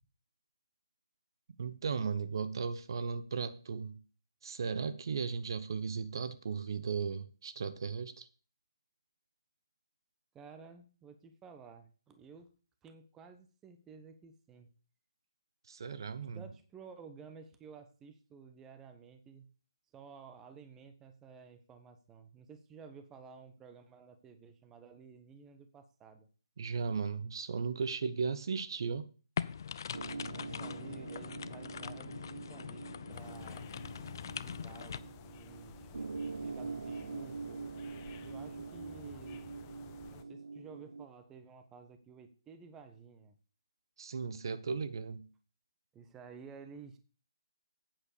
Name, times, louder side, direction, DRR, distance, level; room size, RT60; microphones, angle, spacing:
voice 1, 1.6-4.0 4.4-8.3 15.7-16.4 26.6-29.1 44.0-45.3, right 5 dB, 55° right, 1.0 m, -36 dB
voice 2, 10.3-12.5 12.8-14.7 16.2-19.5 19.9-26.3 30.3-33.8 34.2-36.1 36.4-37.7 38.2-39.6 40.1-43.4 45.9-47.0, right 5 dB, 15° right, 1.2 m, -53 dB
sound 1, 29.4-35.0, left 7 dB, 50° left, 0.6 m, -42 dB
sound 2, 29.9-41.1, right 4 dB, 75° right, 0.5 m, -44 dB
sound 3, 33.1-40.2, left 7 dB, 25° left, 1.0 m, -53 dB
8.8 x 7.6 x 6.9 m
figure-of-eight pair, 145°, 3 cm